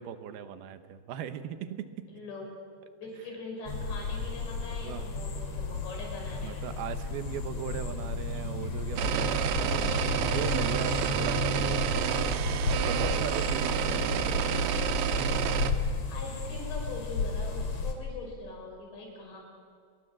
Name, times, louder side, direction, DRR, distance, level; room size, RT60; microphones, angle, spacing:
voice 1, 0.0-2.1 4.8-5.1 5.8-5.9 6.4-12.1 12.7-14.7, right 9 dB, 70° right, 10 dB, 2.8 m, -39 dB
voice 2, 2.1-2.5 2.9-6.6 13.1-13.3 13.7-13.8 16.1-19.4, left 2 dB, 80° left, 1 dB, 8.0 m, -42 dB
Ambience Day Wildlife A, 3.7-17.9, left 4 dB, 40° left, 3.1 m, -33 dB
sound 1, 9.0-15.7, right 10 dB, 85° right, 3.4 m, -29 dB
27.5 x 22.0 x 7.6 m, 2.1 s
omnidirectional pair, 5.0 m